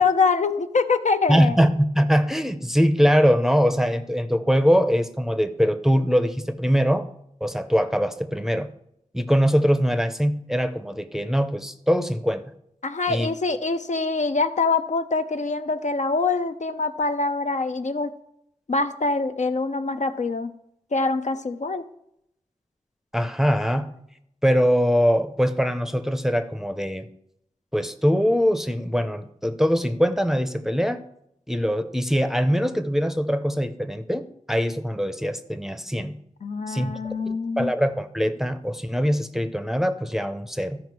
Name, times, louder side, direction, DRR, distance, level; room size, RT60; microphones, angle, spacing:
voice 1, 0.0-1.6 12.8-18.1 18.7-20.5 20.9-21.8 36.4-37.7, left 4 dB, 65° left, 8 dB, 0.6 m, -24 dB
voice 2, 1.3-7.1 7.4-8.7 9.1-12.4 13.1-13.3 23.1-23.9 24.4-27.1 27.7-31.0 31.5-36.2 36.7-36.9 37.6-40.8, equal, 5° right, 9 dB, 0.6 m, -22 dB
13.5 x 5.0 x 4.7 m, 0.75 s
wide cardioid pair, 85°, 13 cm